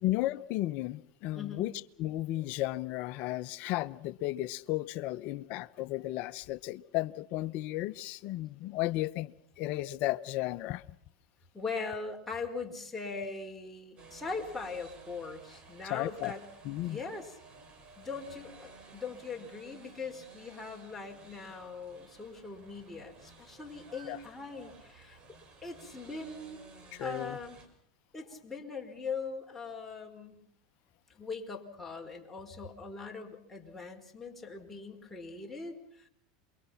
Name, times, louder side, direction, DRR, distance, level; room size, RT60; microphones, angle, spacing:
voice 1, 0.0-1.7 2.0-9.3 9.6-10.8 15.8-16.4 16.6-17.0 24.1-24.2 26.9-27.4, left 16 dB, 55° left, 1.0 m, -34 dB
voice 2, 1.3-1.7 11.5-16.4 16.8-17.3 18.0-25.2 25.6-26.7 27.0-27.6 28.1-30.4 31.1-36.1, left 4 dB, 5° left, 5.0 m, -41 dB
sound 1, 14.0-27.7, right 4 dB, 35° right, 6.1 m, -55 dB
28.5 x 24.0 x 5.9 m
hypercardioid pair, 95°, 3 cm